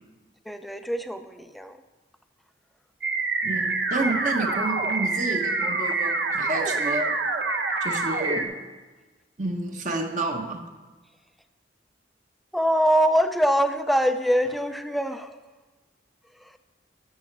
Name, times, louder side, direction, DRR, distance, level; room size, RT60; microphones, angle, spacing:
voice 1, 0.5-1.8 12.5-15.4 16.4-16.6, equal, ahead, 9 dB, 0.4 m, -24 dB
sound 1, 3.0-8.4, right 3 dB, 70° right, 0.9 m, -26 dB
voice 2, 3.4-7.1 7.8-8.5 9.4-10.6, right 2 dB, 45° right, 3 dB, 1.2 m, -29 dB
12.5 x 7.0 x 4.7 m, 1.3 s
head